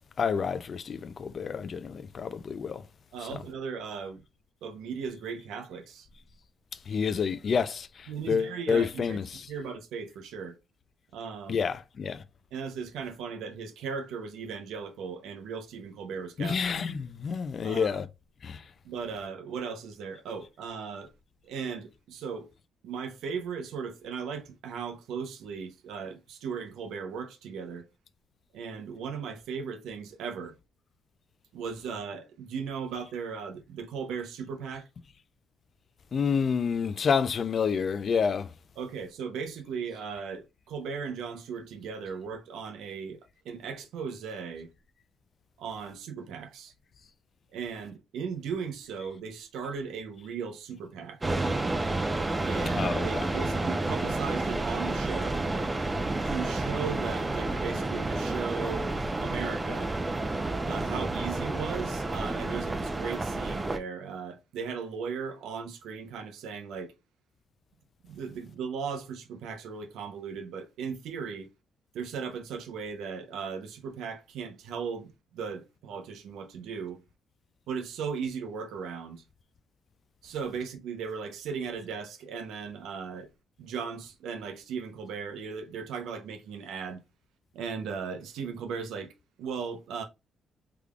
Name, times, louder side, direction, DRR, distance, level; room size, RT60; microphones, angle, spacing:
voice 1, 0.2-2.8 6.9-7.9 8.3-9.2 11.5-12.2 16.4-18.1 18.4-18.6 36.1-38.5 52.8-53.1, left 6 dB, 50° left, 0.4 m, -28 dB
voice 2, 3.1-4.2 4.6-6.1 8.1-10.6 11.1-11.6 12.5-16.8 17.6-18.0 18.8-21.1 21.4-22.5 22.8-27.9 28.5-30.6 31.5-34.9 38.8-44.7 45.6-46.7 47.5-51.2 52.4-55.5 56.2-59.9 60.6-66.9 68.0-71.5 71.9-77.0 77.7-79.2 80.2-83.3 83.6-87.0 87.5-89.1 89.4-90.0, right 6 dB, 85° right, 0.7 m, -37 dB
sound 1, 51.2-63.8, right 2 dB, 20° right, 0.5 m, -30 dB
3.6 x 3.3 x 2.3 m
cardioid pair, 90°, 0 cm